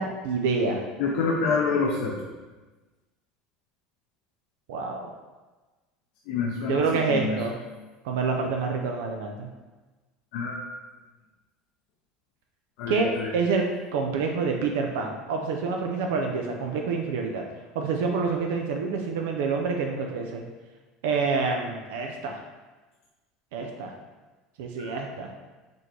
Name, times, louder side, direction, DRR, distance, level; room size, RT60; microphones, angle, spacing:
voice 1, 0.0-0.8 4.7-5.1 6.7-7.6 8.0-9.5 12.9-17.4 17.7-20.4 21.0-22.4 23.5-23.9 24.6-25.3, right 4 dB, 85° right, 2 dB, 0.4 m, -27 dB
voice 2, 1.0-2.3 6.3-6.8 7.1-7.4 10.3-10.6 12.8-13.3 24.8-24.9, left 4 dB, 70° left, -3 dB, 0.5 m, -27 dB
4.1 x 3.2 x 2.8 m, 1.2 s
supercardioid pair, 125°, 0 cm